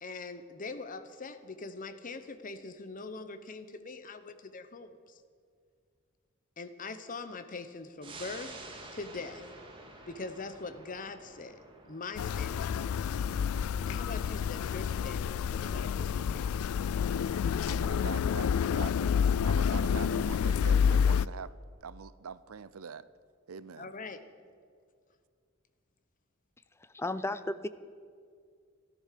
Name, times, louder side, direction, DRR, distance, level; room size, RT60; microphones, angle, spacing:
voice 1, 0.0-5.2 6.6-8.6 8.9-9.4 10.1-11.6 11.9-13.1 13.8-16.7 23.8-24.2, left 3 dB, 40° left, 11 dB, 0.9 m, -42 dB
sound 1, 8.0-19.0 19.4-19.5, right 2 dB, 25° right, 2.2 m, -52 dB
sound 2, 12.2-21.3, left 7 dB, 90° left, 0.3 m, -29 dB
voice 2, 17.7-19.1 19.4-21.5 21.8-23.1 23.5-23.9, right 6 dB, 90° right, 17 dB, 0.5 m, -44 dB
voice 3, 26.8-27.7, left 2 dB, 10° left, 14 dB, 0.4 m, -34 dB
14.5 x 13.0 x 6.7 m, 2.2 s
head